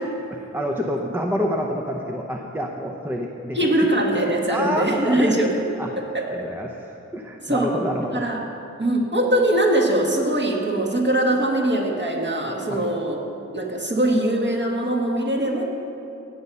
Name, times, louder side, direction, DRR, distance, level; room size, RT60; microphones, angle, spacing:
voice 1, 0.3-3.6 4.5-5.4 5.8-5.9 6.3-8.3 12.7-12.9, equal, 5° right, 1 dB, 0.8 m, -28 dB
voice 2, 3.5-5.5 6.0-6.3 7.5-7.7 8.1-8.4 8.8-13.2 13.5-15.6, right 1 dB, 40° right, -2 dB, 2.1 m, -22 dB
17.5 x 7.2 x 5.6 m, 2.8 s
wide cardioid pair, 75°, 30 cm